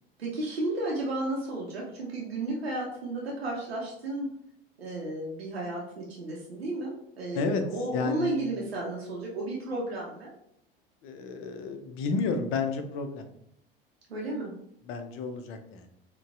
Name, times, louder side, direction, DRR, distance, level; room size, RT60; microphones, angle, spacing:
voice 1, 0.2-4.3 4.8-10.3 14.1-14.5, right 2 dB, 85° right, -3 dB, 0.7 m, -33 dB
voice 2, 7.9-8.4 11.0-13.2 14.8-15.9, left 4 dB, 45° left, 6 dB, 0.6 m, -31 dB
4.0 x 2.2 x 2.4 m, 0.75 s
figure-of-eight pair, 75°, 30 cm